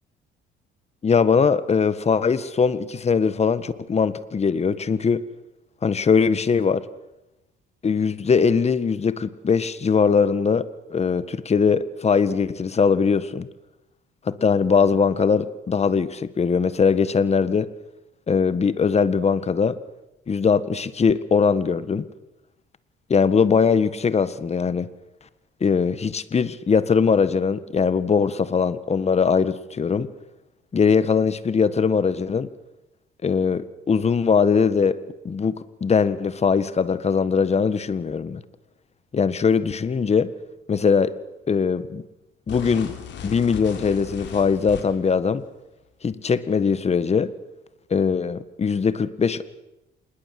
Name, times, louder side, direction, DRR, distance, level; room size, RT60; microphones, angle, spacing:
voice 1, 1.0-5.2 5.8-6.8 7.8-13.5 14.3-17.7 18.3-19.8 20.3-22.1 23.1-24.9 25.6-30.1 30.7-32.5 33.2-35.0 35.2-38.4 39.1-40.3 40.7-41.1 41.5-42.0 42.5-42.9 43.2-45.4 46.0-47.3 47.9-49.4, left 5 dB, 35° left, 1.7 m, -21 dB
sound 1, 42.5-45.1, left 7 dB, 65° left, 5.4 m, -36 dB
27.0 x 20.5 x 7.7 m
cardioid pair, 95°, 20 cm